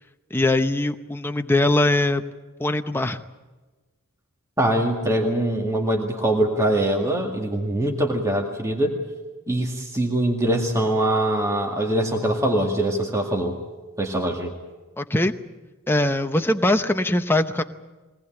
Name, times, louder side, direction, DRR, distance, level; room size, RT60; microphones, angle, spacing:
voice 1, 0.3-2.2 2.6-3.2 15.0-15.3 15.9-17.6, left 1 dB, 10° left, 7 dB, 0.8 m, -21 dB
voice 2, 4.6-9.0 9.5-13.5 14.0-14.5, right 1 dB, 15° right, 1 dB, 2.0 m, -23 dB
22.5 x 19.0 x 8.9 m, 1.2 s
head